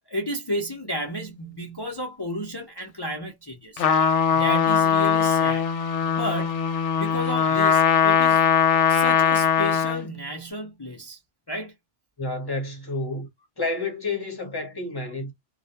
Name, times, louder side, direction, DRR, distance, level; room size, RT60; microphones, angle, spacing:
voice 1, 0.1-3.8 4.3-5.7 6.0-6.7 7.0-8.4 8.9-11.2 11.5-11.7, equal, 45° left, 0.3 m, -32 dB
Trumpet, 3.8-10.1, left 7 dB, 70° left, 0.8 m, -20 dB
voice 2, 12.2-13.3 13.6-15.3, left 2 dB, 20° left, 0.9 m, -30 dB
2.3 x 2.1 x 2.7 m
omnidirectional pair, 1.3 m